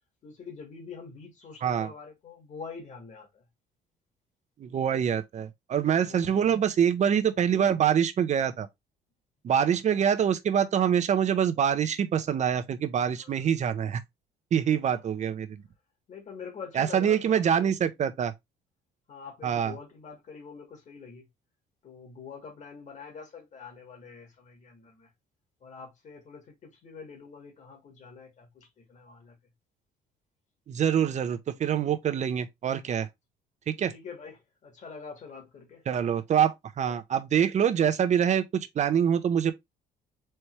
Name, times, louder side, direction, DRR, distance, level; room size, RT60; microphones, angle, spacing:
voice 1, 0.2-3.5 6.0-6.6 7.3-7.4 9.5-9.8 13.2-13.4 14.9-15.1 16.1-17.7 19.1-21.3 21.8-25.1 25.6-29.4 33.8-35.8 36.8-37.0, left 5 dB, 45° left, 2.2 m, -45 dB
voice 2, 4.6-8.7 9.4-14.0 14.5-15.6 16.8-18.3 19.4-19.7 30.7-33.1 33.7-33.9 35.9-39.5, right 8 dB, 45° right, 0.8 m, -25 dB
4.4 x 3.4 x 3.2 m
cardioid pair, 110°, 17 cm